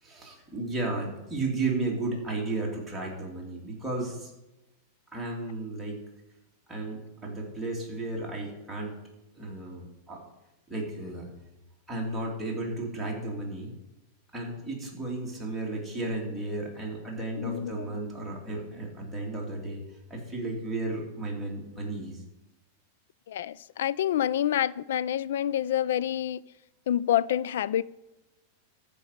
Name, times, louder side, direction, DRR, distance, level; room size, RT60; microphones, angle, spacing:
voice 1, 0.0-4.3 5.1-6.0 6.7-9.0 9.3-10.2 10.7-11.3 11.9-13.7 14.3-19.8 20.1-22.2, right 2 dB, 5° right, 2.7 m, -34 dB
voice 2, 17.4-17.9 23.3-26.4 26.9-27.9, left 11 dB, 80° left, 0.3 m, -27 dB
14.0 x 5.3 x 6.5 m
supercardioid pair, 155°, 0 cm